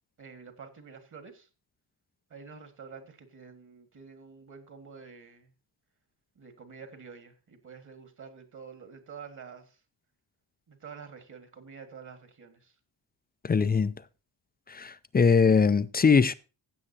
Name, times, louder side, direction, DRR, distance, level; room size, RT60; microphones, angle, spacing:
voice 1, 0.2-1.5 2.3-5.5 6.4-9.8 10.7-12.8, right 5 dB, 40° right, 1.8 m, -48 dB
voice 2, 13.4-13.9 14.7-16.3, left 5 dB, 20° left, 0.5 m, -22 dB
16.0 x 7.8 x 2.8 m
wide cardioid pair, 150°, 44 cm